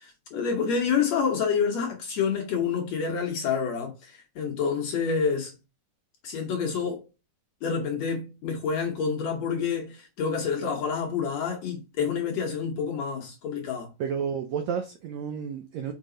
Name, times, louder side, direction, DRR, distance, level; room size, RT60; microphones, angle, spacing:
voice 1, 0.0-5.6 6.2-7.1 7.6-13.9, left 6 dB, 65° left, 1.9 m, -28 dB
voice 2, 14.0-15.9, right 7 dB, 80° right, 1.6 m, -31 dB
5.7 x 5.3 x 3.8 m
omnidirectional pair, 4.1 m